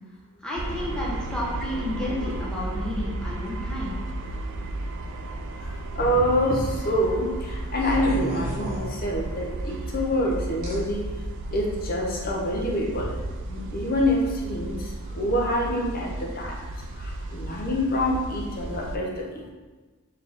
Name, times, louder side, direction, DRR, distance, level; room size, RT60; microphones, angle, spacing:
voice 1, 0.4-4.0, left 1 dB, 5° left, -6 dB, 0.8 m, -31 dB
sound 1, 0.6-19.0, right 2 dB, 55° right, 0.3 m, -34 dB
voice 2, 5.6-11.1 11.5-13.1 13.5-16.6 17.0-19.4, equal, 45° left, -1 dB, 0.6 m, -26 dB
sound 2, 7.7-9.5 10.6-10.7 11.6-11.8, equal, 40° right, 1.0 m, -35 dB
4.0 x 2.8 x 3.5 m, 1.3 s
head